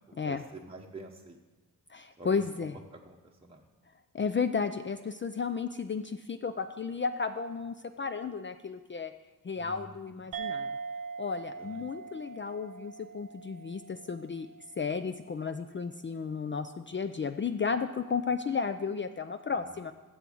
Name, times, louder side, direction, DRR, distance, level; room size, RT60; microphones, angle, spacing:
voice 1, 0.0-1.4 2.2-2.3 3.0-3.7 9.6-10.2 11.6-11.8 19.5-19.8, right 2 dB, 15° right, 0 dB, 0.9 m, -48 dB
voice 2, 1.9-2.8 4.1-9.1 9.4-10.7 11.2-14.5 14.8-19.9, left 5 dB, 35° left, 10 dB, 0.5 m, -33 dB
sound 1, 10.3-15.2, right 5 dB, 70° right, 0.6 m, -41 dB
7.2 x 6.7 x 7.7 m, 1.2 s
cardioid pair, 55°, 35 cm